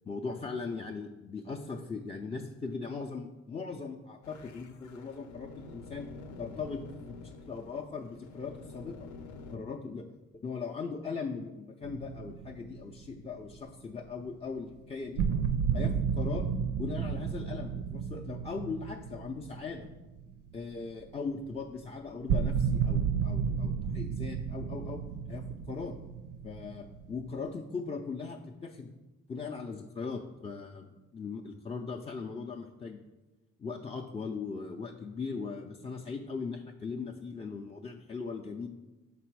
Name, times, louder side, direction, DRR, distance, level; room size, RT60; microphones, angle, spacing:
voice 1, 0.0-6.1 6.4-9.1 9.5-10.1 10.4-15.2 15.7-16.5 16.8-19.9 20.5-26.0 26.4-28.9 29.3-33.0 33.6-38.7, left 4 dB, 20° left, 0 dB, 0.4 m, -39 dB
sound 1, 4.2-9.6, left 3 dB, 75° left, 0.7 m, -48 dB
High Tension One Beat Sequence Heavy, 11.8-13.2 13.5-13.6 14.6-14.7 15.2-20.5 20.8-20.9 21.5-21.6 22.3-27.5, right 7 dB, 85° right, 0.5 m, -32 dB
5.9 x 4.1 x 4.6 m, 1.1 s
cardioid pair, 90°, 30 cm